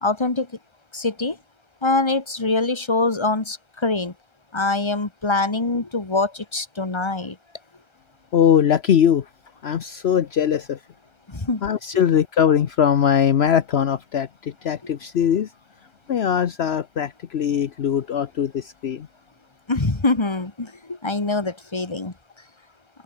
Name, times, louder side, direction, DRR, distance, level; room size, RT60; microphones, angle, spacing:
voice 1, 0.0-0.5 0.9-1.4 1.8-4.1 4.5-7.4 11.3-11.6 19.7-22.1, left 3 dB, 25° left, 1.9 m, -24 dB
voice 2, 8.3-9.3 9.6-10.8 11.6-15.5 16.1-19.1, left 8 dB, 65° left, 1.1 m, -21 dB
omnidirectional pair, 1.2 m